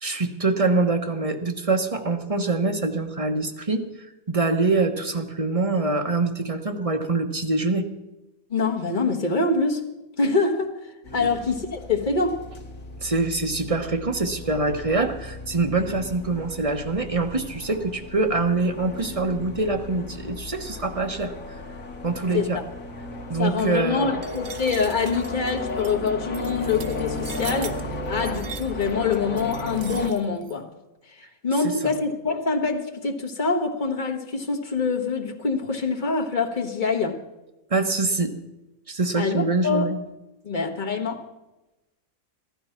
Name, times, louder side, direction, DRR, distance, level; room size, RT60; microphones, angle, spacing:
voice 1, 0.0-3.8 4.3-7.9 11.1-11.3 13.0-21.3 22.0-22.6 23.3-24.1 31.6-31.9 37.7-38.3 38.9-40.0, right 3 dB, 25° right, 1.1 m, -24 dB
voice 2, 8.5-9.9 10.2-12.5 22.3-22.5 23.4-30.7 31.2-37.2 39.2-39.9 40.4-41.2, left 4 dB, 35° left, 1.5 m, -25 dB
sound 1, 11.0-30.1, left 2 dB, 75° left, 1.9 m, -35 dB
sound 2, 24.2-30.5, right 7 dB, 55° right, 1.0 m, -41 dB
14.5 x 12.5 x 5.8 m
omnidirectional pair, 1.5 m